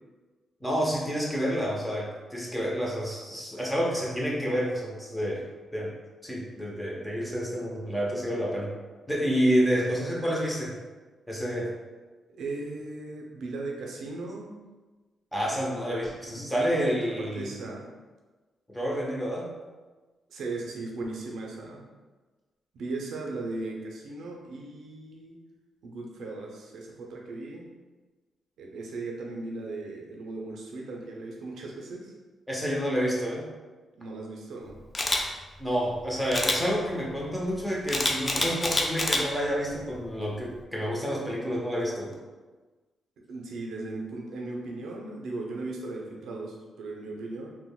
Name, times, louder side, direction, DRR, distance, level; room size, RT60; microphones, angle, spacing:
voice 1, 0.6-5.4 5.7-5.9 6.2-8.7 9.1-10.7 11.3-11.7 15.3-17.6 18.7-19.5 32.5-33.5 35.6-42.2, equal, 5° left, -4 dB, 0.7 m, -29 dB
voice 2, 12.4-14.6 16.4-17.9 20.3-21.8 22.7-25.4 25.8-27.7 28.6-32.1 33.9-34.8 43.3-47.5, right 2 dB, 80° right, -1 dB, 0.5 m, -37 dB
Camera, 34.9-35.2 36.3-36.6 37.9-39.2 39.7-40.0, left 2 dB, 30° left, 0.4 m, -26 dB
3.4 x 2.2 x 2.2 m, 1.3 s
cardioid pair, 95°, 0 cm